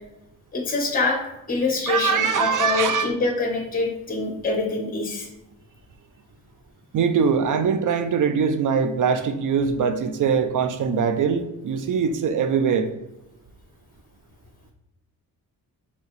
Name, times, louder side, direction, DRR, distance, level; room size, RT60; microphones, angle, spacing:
voice 1, 0.5-1.2 1.5-5.3, left 3 dB, 20° left, 1 dB, 1.1 m, -25 dB
voice 2, 1.9-3.1 6.9-12.9, right 6 dB, 55° right, 8 dB, 0.5 m, -22 dB
4.6 x 3.5 x 3.3 m, 0.91 s
cardioid pair, 75°, 38 cm